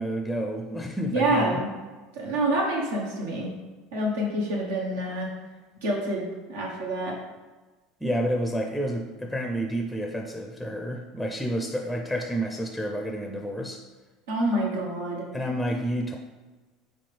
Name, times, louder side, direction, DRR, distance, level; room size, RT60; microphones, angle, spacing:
voice 1, 0.0-1.6 8.0-13.8 15.3-16.2, equal, ahead, 2 dB, 0.5 m, -29 dB
voice 2, 1.1-1.7 2.1-3.5 3.9-5.3 5.8-7.1 14.3-15.2, right 1 dB, 85° right, -2 dB, 0.9 m, -27 dB
4.2 x 3.5 x 3.3 m, 1.2 s
supercardioid pair, 95°, 0 cm